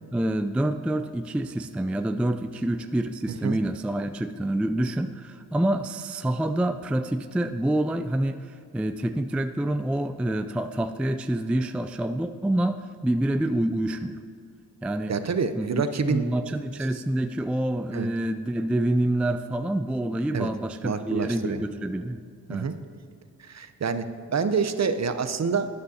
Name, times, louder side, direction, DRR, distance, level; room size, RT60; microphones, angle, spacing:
voice 1, 0.1-14.2 14.8-15.2 15.6-15.7 16.0-22.2 22.5-22.7, right 1 dB, 5° right, 9 dB, 0.3 m, -27 dB
voice 2, 15.1-16.3 17.9-18.1 20.3-20.5 20.8-21.6 22.5-22.7 23.4-25.7, right 5 dB, 45° right, 10 dB, 0.7 m, -27 dB
12.5 x 9.4 x 2.8 m, 2.4 s
cardioid pair, 50°, 39 cm